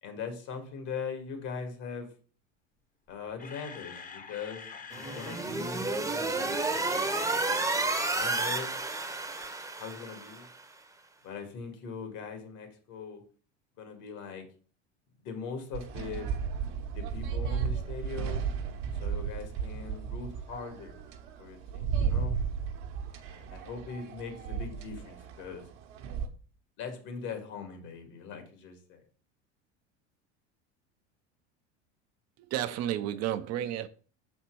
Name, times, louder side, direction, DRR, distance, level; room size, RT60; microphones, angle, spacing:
voice 1, 0.0-2.1 3.1-7.3 8.1-8.7 9.8-10.5 11.2-13.2 13.8-14.5 15.2-16.3 16.9-18.4 19.0-21.0 21.4-22.3 23.1-25.7 26.8-29.0, left 5 dB, 60° left, 1.9 m, -41 dB
Camera, 3.1-5.5 6.3-8.5 8.8-9.0 9.4-9.5, left 5 dB, 25° left, 0.9 m, -45 dB
sound 1, 4.9-10.5, right 3 dB, 10° right, 0.8 m, -31 dB
sound 2, 15.7-26.3, right 6 dB, 65° right, 1.0 m, -34 dB
voice 2, 32.4-33.9, right 11 dB, 45° right, 0.6 m, -32 dB
5.8 x 4.3 x 4.5 m
hypercardioid pair, 85°, 35 cm